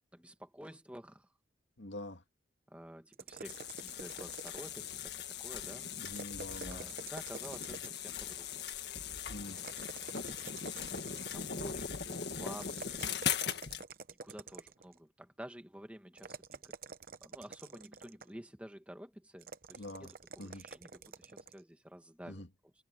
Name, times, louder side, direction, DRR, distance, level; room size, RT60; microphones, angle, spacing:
voice 1, 0.1-1.3 2.7-5.9 6.6-8.7 11.1-13.5 14.2-16.7 17.2-22.7, equal, 5° right, 1.6 m, -51 dB
voice 2, 1.8-2.2 6.0-6.9 9.3-9.6 19.8-20.1 20.4-20.7 22.3-22.5, left 1 dB, 75° left, 2.2 m, -45 dB
sound 1, 3.1-5.0 6.0-8.1 9.6-11.5 12.6-15.0 16.2-18.4 19.4-21.6, right 4 dB, 50° right, 0.9 m, -49 dB
sound 2, 3.4-13.8, left 7 dB, 60° left, 1.8 m, -40 dB
head